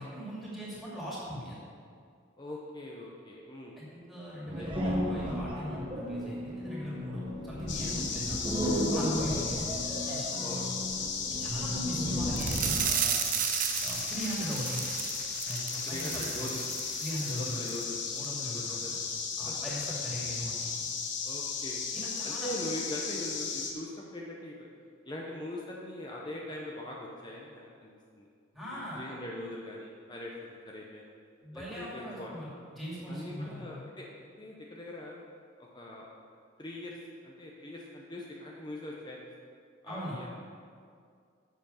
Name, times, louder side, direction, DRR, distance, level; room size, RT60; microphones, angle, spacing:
voice 1, 0.0-1.6 3.8-8.4 8.9-9.6 10.0-10.8 11.4-13.2 13.8-14.8 15.4-16.6 17.0-17.6 18.1-18.8 19.4-20.8 21.9-22.5 28.5-29.0 31.4-33.9 39.9-40.2, equal, ahead, -8 dB, 2.6 m, -40 dB
voice 2, 2.4-3.8 4.6-4.9 8.0-8.2 9.4-9.6 10.4-10.8 14.4-14.5 15.9-16.6 17.2-18.0 18.5-19.0 19.5-19.6 21.2-21.8 22.2-24.7 25.1-27.9 28.2-28.3 28.7-30.3 30.6-31.1 31.5-32.3 33.1-35.2 35.6-36.1 36.6-37.0 37.2-39.2 39.8-40.3, left 1 dB, 20° left, -3 dB, 0.7 m, -42 dB
sound 1, 4.5-13.0, equal, 25° right, 1.1 m, -34 dB
sound 2, 7.7-23.7, left 5 dB, 65° left, 1.0 m, -35 dB
sound 3, 12.4-17.4 17.7-17.8 18.2-18.3, right 10 dB, 40° right, 0.4 m, -34 dB
8.1 x 6.9 x 5.6 m, 2.2 s
head